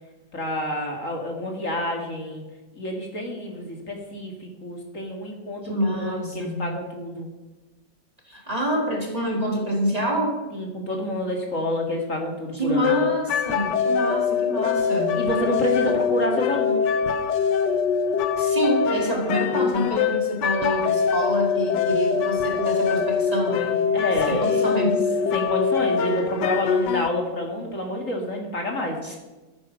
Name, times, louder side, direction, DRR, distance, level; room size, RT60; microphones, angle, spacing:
voice 1, 0.3-2.4 2.8-7.3 10.5-13.0 15.1-16.9 23.9-24.7 25.3-29.2, left 1 dB, 50° left, 1 dB, 2.5 m, -28 dB
voice 2, 5.6-6.7 8.3-10.3 12.5-15.2 15.9-16.0 18.4-23.9 24.3-25.1 29.0-29.2, equal, 20° right, 1 dB, 2.6 m, -27 dB
sound 1, 12.8-27.1, left 6 dB, 85° left, 1.5 m, -23 dB
13.5 x 9.8 x 6.5 m, 1.1 s
omnidirectional pair, 1.8 m